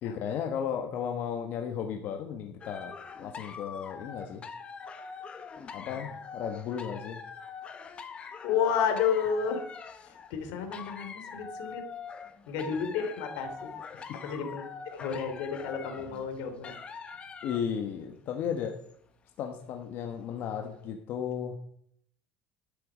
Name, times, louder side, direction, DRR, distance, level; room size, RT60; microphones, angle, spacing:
voice 1, 0.0-4.5 5.7-7.2 13.9-14.2 17.1-18.7 19.4-21.6, left 8 dB, 55° left, 3 dB, 1.4 m, -35 dB
sound 1, 2.6-17.8 18.6-18.9 19.4-19.5, left 5 dB, 30° left, 1.3 m, -44 dB
voice 2, 8.4-11.9 12.5-13.7 14.2-16.7, left 7 dB, 80° left, 6 dB, 3.0 m, -31 dB
12.0 x 10.5 x 5.1 m, 0.68 s
cardioid pair, 135°, 4 cm